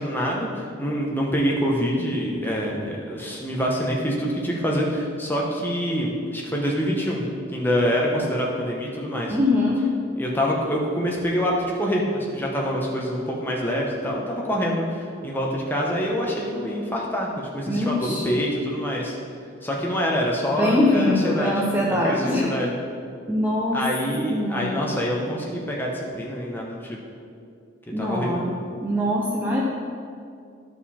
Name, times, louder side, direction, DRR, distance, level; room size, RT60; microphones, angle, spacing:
voice 1, 0.0-7.2 7.5-9.4 10.2-19.2 19.6-22.8 23.7-27.0 28.0-28.4, equal, 10° left, -3 dB, 1.1 m, -26 dB
voice 2, 9.3-9.9 17.6-18.4 20.5-22.5 23.3-23.8 24.3-24.9 27.9-28.5 28.8-29.6, left 1 dB, 10° right, -4 dB, 0.7 m, -23 dB
12.5 x 5.0 x 4.3 m, 2.4 s
head